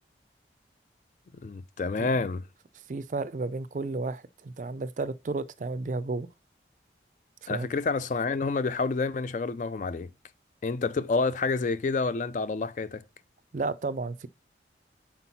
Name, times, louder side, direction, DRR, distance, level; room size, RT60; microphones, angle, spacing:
voice 1, 1.4-2.4 7.5-10.1 10.6-13.0, left 4 dB, 45° left, 0.3 m, -28 dB
voice 2, 2.9-6.3 7.4-7.7 13.5-14.3, right 3 dB, 45° right, 0.4 m, -32 dB
5.8 x 4.5 x 4.1 m
head